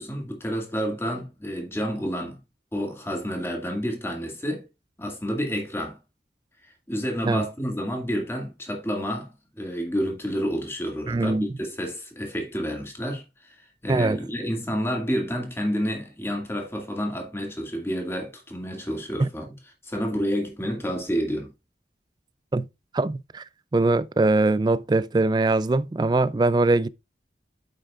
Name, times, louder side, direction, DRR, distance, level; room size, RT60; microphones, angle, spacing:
voice 1, 0.0-2.4 2.7-4.6 5.0-6.0 6.9-19.4 19.8-21.5, equal, 15° left, 1.9 m, -29 dB
voice 2, 11.1-11.5 13.9-14.2 19.2-19.3 22.5-22.7 22.9-23.4 23.7-26.9, right 2 dB, 25° right, 0.3 m, -22 dB
8.9 x 8.3 x 2.4 m
head